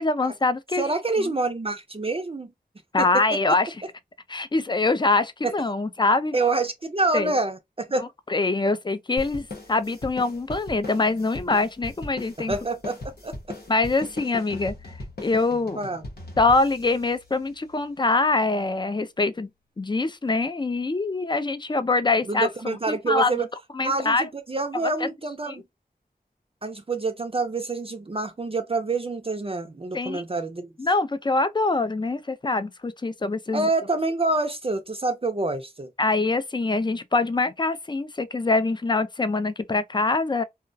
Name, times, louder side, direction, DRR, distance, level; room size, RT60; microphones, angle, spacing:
voice 1, 0.0-1.3 2.9-3.7 4.3-6.3 7.1-7.3 8.3-12.5 13.7-14.9 15.2-15.8 16.4-19.5 19.8-23.3 23.7-24.3 25.0-25.1 25.5-25.6 29.9-30.2 30.8-33.7 36.0-40.4, left 3 dB, 30° left, 0.3 m, -24 dB
voice 2, 0.7-2.5 5.4-5.5 6.3-8.1 12.4-13.0 13.2-13.3 15.8-16.0 22.3-23.4 23.8-25.6 26.6-30.7 33.5-35.9, right 3 dB, 35° right, 0.4 m, -27 dB
sound 1, 9.2-18.0, left 2 dB, 80° left, 0.8 m, -39 dB
2.3 x 2.1 x 2.5 m
wide cardioid pair, 50°, 16 cm